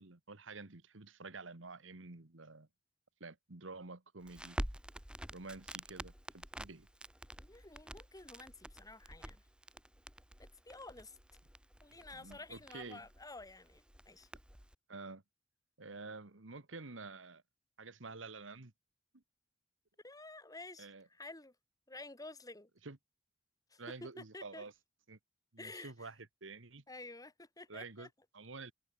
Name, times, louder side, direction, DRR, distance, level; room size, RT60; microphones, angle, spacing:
voice 1, 0.0-2.7 3.2-4.6 5.3-6.9 12.1-13.0 14.9-15.2 15.8-17.4 17.8-18.7 19.1-19.2 20.8-21.0 22.8-23.0 23.8-24.7 25.1-25.2 25.5-26.1 26.4-26.8 27.7-28.1 28.3-28.7, right 3 dB, 80° right, 1.7 m, -49 dB
Crackle, 4.2-14.7, equal, 5° right, 2.0 m, -48 dB
voice 2, 7.4-9.5 10.4-11.2 11.8-14.3 20.0-21.6 21.9-22.7 23.7-24.6 25.6-26.1 26.9-28.1, left 2 dB, 20° left, 3.1 m, -51 dB
head